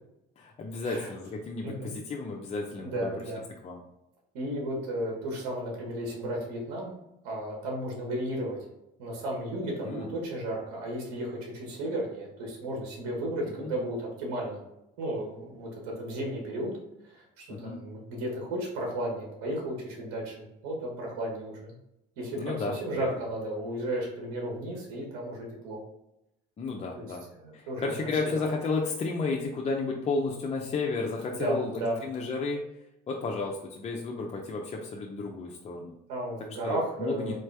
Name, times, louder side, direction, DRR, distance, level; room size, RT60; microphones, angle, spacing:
voice 1, 0.4-3.2 3.6-3.8 9.8-10.1 13.6-13.7 17.5-17.8 22.4-23.1 26.6-27.2 27.5-32.6 33.1-35.9 36.6-37.3, left 3 dB, 35° left, -1 dB, 0.6 m, -32 dB
voice 2, 1.6-1.9 2.8-3.5 4.3-6.9 7.2-8.6 9.0-14.6 15.0-16.8 17.0-21.7 22.2-25.8 26.9-27.0 27.3-28.3 31.3-32.0 36.1-37.3, right 1 dB, 90° right, -1 dB, 1.5 m, -34 dB
4.1 x 3.2 x 3.3 m, 0.88 s
supercardioid pair, 100°, 20 cm